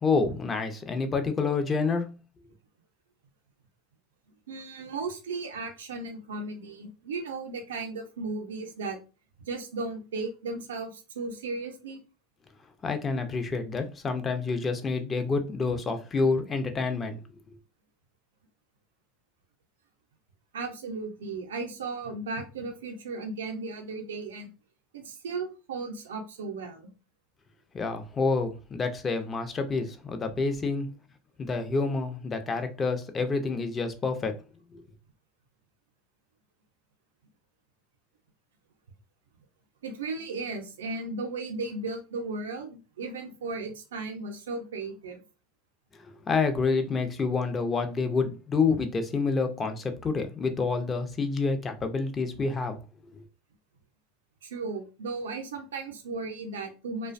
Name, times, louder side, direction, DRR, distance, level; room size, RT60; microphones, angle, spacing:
voice 1, 0.0-2.1 12.8-17.2 27.7-30.9 31.4-34.3 34.7-34.8 46.0-52.8, left 4 dB, 30° left, 0.5 m, -28 dB
voice 2, 4.5-9.0 9.5-12.0 20.5-24.5 24.9-26.9 39.8-45.2 54.4-57.1, right 3 dB, 85° right, 0.5 m, -35 dB
2.4 x 2.1 x 2.4 m
hypercardioid pair, 90°, 0 cm